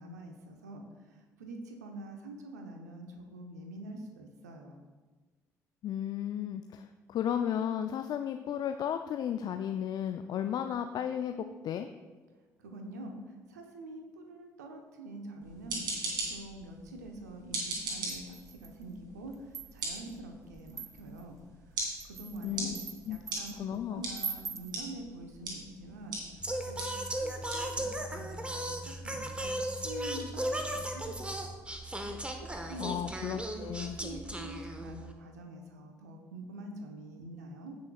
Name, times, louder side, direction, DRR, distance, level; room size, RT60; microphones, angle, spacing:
voice 1, 0.0-4.8 12.6-21.4 21.7-22.8 23.1-26.2 26.7-26.9 27.1-31.5 32.5-32.9 33.7-37.8, right 2 dB, 80° right, 3 dB, 1.0 m, -46 dB
voice 2, 5.8-11.4 11.6-11.9 22.4-22.8 23.1-23.2 23.6-24.0 32.8-34.0, left 9 dB, 50° left, 8 dB, 0.4 m, -34 dB
sound 1, 15.4-32.2, right 2 dB, 55° right, 2.8 m, -42 dB
sound 2, 18.1-18.8 19.3-20.0 20.7-21.2 21.8-23.6 24.1-24.8, right 5 dB, 35° right, 0.7 m, -42 dB
Singing, 26.4-35.1, right 1 dB, 10° right, 1.2 m, -36 dB
16.0 x 6.3 x 2.3 m, 1.3 s
figure-of-eight pair, 45°, 9 cm